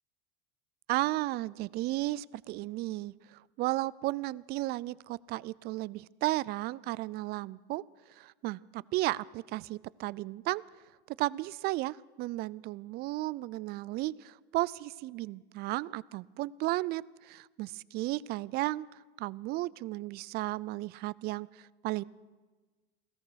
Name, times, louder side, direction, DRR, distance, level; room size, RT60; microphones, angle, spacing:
voice 1, 0.9-7.8 8.2-10.6 11.2-18.9 19.2-22.0, right 18 dB, 50° right, 21 dB, 0.4 m, -34 dB
16.5 x 13.5 x 6.3 m, 1.3 s
supercardioid pair, 110°, 21 cm